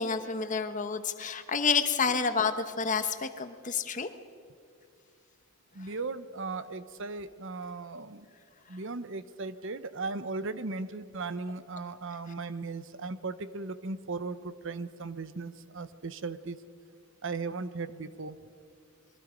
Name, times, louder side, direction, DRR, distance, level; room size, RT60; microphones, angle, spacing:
voice 1, 0.0-4.1, left 5 dB, 35° left, 9 dB, 1.1 m, -29 dB
voice 2, 5.7-8.3 8.7-16.6 17.2-18.4, right 3 dB, 60° right, 13 dB, 0.8 m, -37 dB
29.0 x 22.5 x 5.2 m, 2.2 s
head